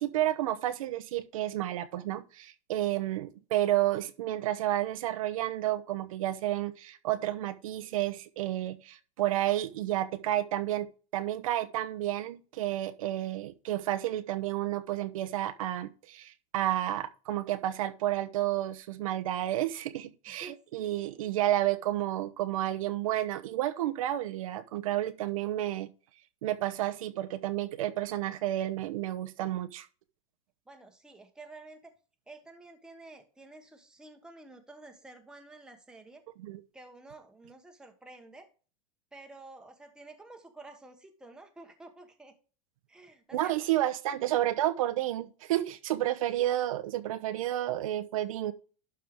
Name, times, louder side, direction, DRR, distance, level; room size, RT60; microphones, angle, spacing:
voice 1, 0.0-25.9 26.4-29.9 36.4-36.6 43.3-48.5, right 13 dB, 75° right, 0.9 m, -31 dB
voice 2, 20.3-21.2 30.7-31.9 32.3-36.2 36.7-38.5 39.1-42.3 42.9-43.5 48.2-48.4, right 2 dB, 5° right, 1.1 m, -51 dB
11.5 x 4.6 x 3.6 m
supercardioid pair, 155°, 18 cm